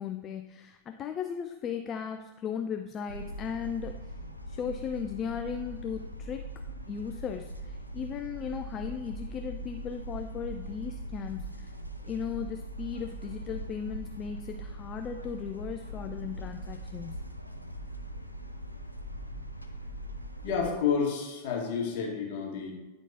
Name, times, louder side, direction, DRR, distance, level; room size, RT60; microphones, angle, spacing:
voice 1, 0.0-4.0 4.5-6.5 6.9-11.7 12.0-17.2, left 7 dB, 30° left, 5 dB, 0.4 m, -37 dB
sound 1, 3.1-20.7, right 1 dB, 90° left, 0.5 m, -41 dB
voice 2, 20.4-22.7, left 6 dB, 50° left, -2 dB, 1.7 m, -30 dB
9.6 x 4.4 x 2.8 m, 1.1 s
figure-of-eight pair, 90°, 0 cm